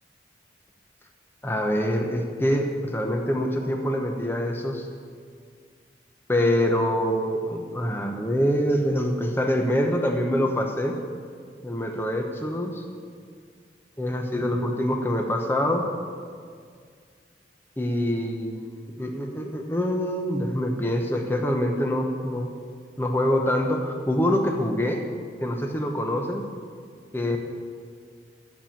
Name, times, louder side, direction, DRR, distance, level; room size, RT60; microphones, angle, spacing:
voice 1, 1.4-4.9 6.3-11.0 11.6-12.8 14.0-15.9 17.8-22.5 23.0-25.0 25.4-26.4 27.1-27.4, equal, 10° left, 2 dB, 0.9 m, -25 dB
12.0 x 7.5 x 8.6 m, 2.1 s
head